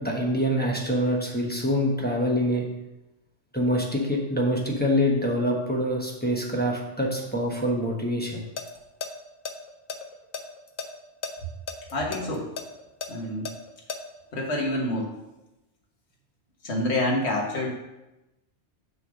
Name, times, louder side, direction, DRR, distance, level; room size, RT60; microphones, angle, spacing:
voice 1, 0.0-2.6 3.5-8.4, equal, 10° left, -2 dB, 1.0 m, -25 dB
sound 1, 8.3-8.7 9.0-9.1 9.4-10.9 11.2-11.3 11.7-14.0, left 6 dB, 55° left, 0.8 m, -34 dB
voice 2, 11.9-12.5 13.1-13.5 14.3-15.1 16.6-17.7, left 1 dB, 70° left, 0 dB, 1.6 m, -27 dB
6.8 x 3.6 x 6.2 m, 0.97 s
omnidirectional pair, 1.2 m